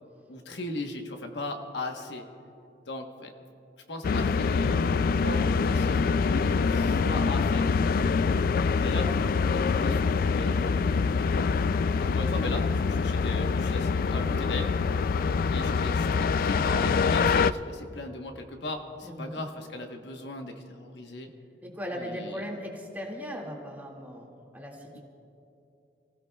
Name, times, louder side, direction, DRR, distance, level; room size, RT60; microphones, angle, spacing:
voice 1, 0.3-2.2 2.9-3.3 3.9-4.8 5.1-7.7 8.8-10.6 12.0-14.7 15.5-21.3 21.9-22.4, left 2 dB, 80° left, 4 dB, 1.2 m, -37 dB
sound 1, 4.0-17.5, left 5 dB, 55° left, 0.3 m, -25 dB
voice 2, 19.0-19.4 21.6-25.0, equal, 10° right, -2 dB, 2.1 m, -38 dB
28.5 x 16.0 x 2.3 m, 2.7 s
head